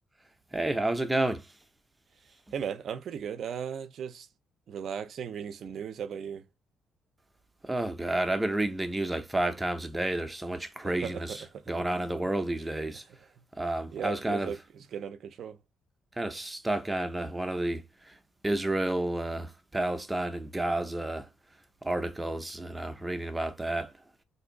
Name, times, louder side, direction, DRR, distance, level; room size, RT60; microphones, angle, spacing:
voice 1, 0.5-1.5 7.6-13.0 13.6-14.5 16.2-18.2 18.4-21.3 21.8-23.9, right 1 dB, 15° right, 0.5 m, -30 dB
voice 2, 2.5-4.3 4.7-6.5 10.8-11.7 12.0-12.1 13.9-14.6 14.9-15.6, right 7 dB, 65° right, 0.4 m, -36 dB
2.6 x 2.4 x 3.8 m
cardioid pair, 90°, 0 cm